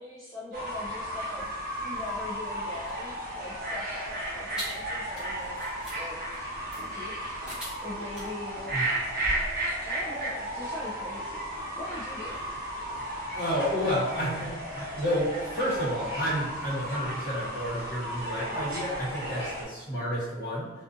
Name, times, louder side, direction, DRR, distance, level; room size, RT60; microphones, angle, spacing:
voice 1, 0.0-6.2 6.9-7.5 7.8-8.8 9.9-11.5 11.7-12.4, left 1 dB, 20° left, -10 dB, 0.4 m, -41 dB
Fowl / Bird, 0.5-19.6, right 1 dB, 40° right, 0.9 m, -34 dB
sound 1, 2.9-9.5, equal, 5° right, 0.7 m, -43 dB
voice 2, 13.3-20.7, equal, 40° left, -9 dB, 1.1 m, -30 dB
2.4 x 2.4 x 2.5 m, 1.1 s
head